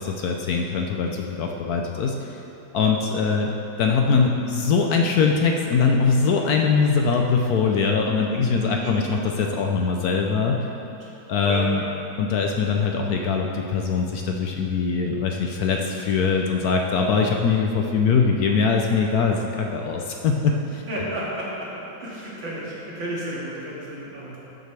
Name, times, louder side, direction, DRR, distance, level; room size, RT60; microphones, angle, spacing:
voice 1, 0.0-2.3 2.7-3.5 3.8-10.6 11.3-11.8 12.2-20.8, left 5 dB, 70° left, 2 dB, 1.0 m, -22 dB
voice 2, 8.3-8.9 11.0-11.1 11.4-11.7 15.7-15.9 20.9-21.7 22.0-24.4, equal, 90° right, -7 dB, 2.7 m, -32 dB
13.5 x 6.5 x 3.3 m, 2.9 s
omnidirectional pair, 2.0 m